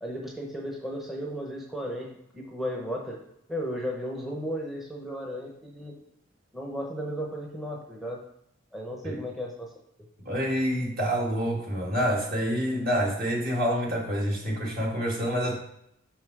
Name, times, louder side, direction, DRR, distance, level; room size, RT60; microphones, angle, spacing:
voice 1, 0.0-3.2 3.5-5.9 6.5-8.2 8.7-9.7, equal, ahead, -1 dB, 0.8 m, -34 dB
voice 2, 10.2-15.6, equal, 45° right, -2 dB, 1.9 m, -27 dB
6.0 x 5.5 x 4.7 m, 0.77 s
head